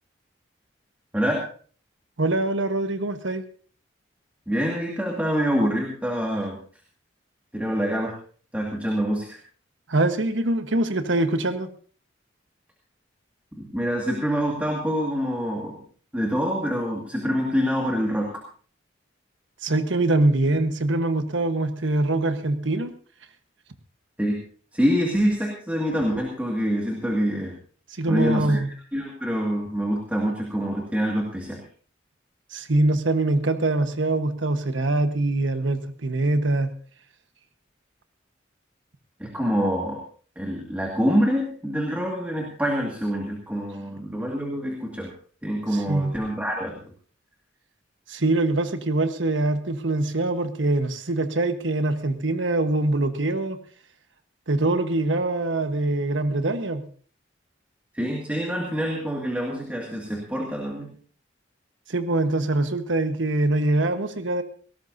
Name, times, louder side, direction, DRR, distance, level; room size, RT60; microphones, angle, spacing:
voice 1, 2.2-3.4 9.9-11.7 19.6-22.9 28.0-28.7 32.5-36.7 45.9-46.1 48.1-53.6 54.5-56.8 61.9-64.4, right 2 dB, 80° right, 8 dB, 1.3 m, -23 dB
voice 2, 4.5-6.6 7.5-8.2 8.5-9.4 13.6-15.8 16.1-18.4 24.2-24.4 24.7-27.6 28.1-28.6 28.9-31.6 39.2-40.0 40.4-45.1 45.4-46.8 57.9-60.9, equal, 10° right, -1 dB, 2.1 m, -26 dB
19.0 x 17.0 x 2.7 m, 0.43 s
head